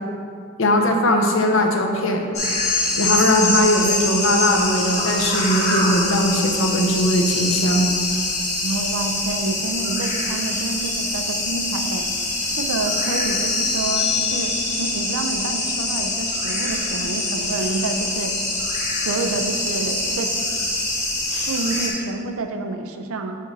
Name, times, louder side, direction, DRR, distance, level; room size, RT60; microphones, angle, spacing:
voice 1, 0.6-2.2 2.9-7.9, left 1 dB, 60° left, 2 dB, 0.6 m, -19 dB
sound 1, 2.3-21.9, left 2 dB, 30° left, 1.0 m, -24 dB
voice 2, 8.6-12.1 12.5-14.5 14.8-18.3 18.9-20.3 20.7-20.8 21.5-23.3, right 3 dB, 75° right, 6 dB, 0.5 m, -28 dB
5.0 x 4.0 x 5.3 m, 2.4 s
head